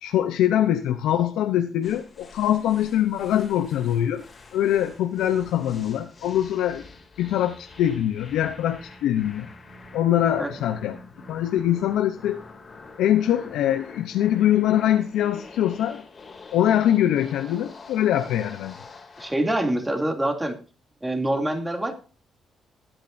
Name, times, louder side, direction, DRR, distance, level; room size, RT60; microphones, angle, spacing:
voice 1, 0.0-4.2 4.5-6.8 7.2-9.5 9.9-11.0 11.3-12.4 13.0-16.0 16.5-18.7, left 11 dB, 85° left, 7 dB, 0.7 m, -23 dB
sound 1, 1.8-19.5, left 3 dB, 40° left, 2.6 m, -46 dB
voice 2, 19.2-20.6 21.0-21.9, right 1 dB, 10° right, 3 dB, 2.7 m, -25 dB
20.0 x 8.9 x 2.7 m, 0.35 s
cardioid pair, 90°, 0 cm